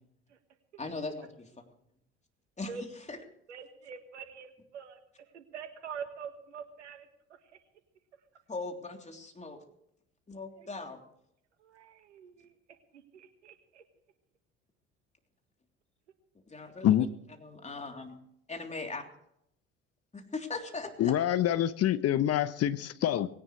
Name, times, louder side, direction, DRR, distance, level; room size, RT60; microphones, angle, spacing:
voice 1, 0.8-1.5 2.6-2.7 3.1-3.2 8.5-9.6 10.3-11.0 16.5-17.0 17.4-18.2 18.5-19.1 20.1-21.2, left 3 dB, 20° left, 4 dB, 3.4 m, -39 dB
voice 2, 3.5-5.0 5.3-7.1 7.4-7.6 10.6-10.7 11.6-12.5 12.9-13.8, right 6 dB, 85° right, 8 dB, 1.7 m, -45 dB
voice 3, 21.0-23.3, left 11 dB, 45° left, 15 dB, 0.9 m, -26 dB
19.5 x 17.5 x 3.2 m, 0.76 s
hypercardioid pair, 60°, 34 cm